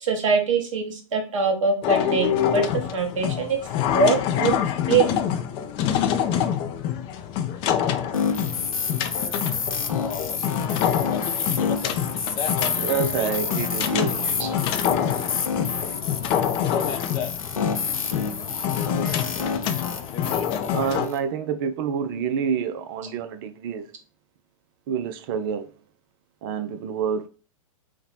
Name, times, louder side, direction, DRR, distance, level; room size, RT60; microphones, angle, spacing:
voice 1, 0.0-2.6 2.9-3.6 3.9-4.6 4.9-5.1, right 4 dB, 65° right, 1.0 m, -23 dB
sound 1, 1.8-21.1, left 9 dB, 30° left, 0.4 m, -26 dB
sound 2, 8.1-21.2, left 5 dB, 80° left, 0.5 m, -29 dB
voice 2, 12.8-14.6 20.7-23.9 24.9-25.7 26.4-27.3, right 7 dB, 40° right, 0.4 m, -28 dB
2.9 x 2.2 x 4.2 m
figure-of-eight pair, 105°, 17 cm